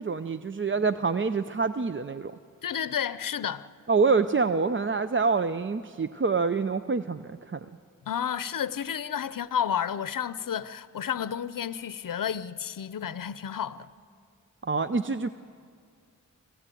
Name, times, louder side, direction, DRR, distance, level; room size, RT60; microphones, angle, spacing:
voice 1, 0.0-2.3 3.9-7.7 14.6-15.3, right 4 dB, 35° right, 0.6 m, -26 dB
voice 2, 2.6-3.7 8.1-13.9, left 8 dB, 75° left, 0.6 m, -31 dB
25.5 x 16.0 x 9.1 m
cardioid pair, 50°, 33 cm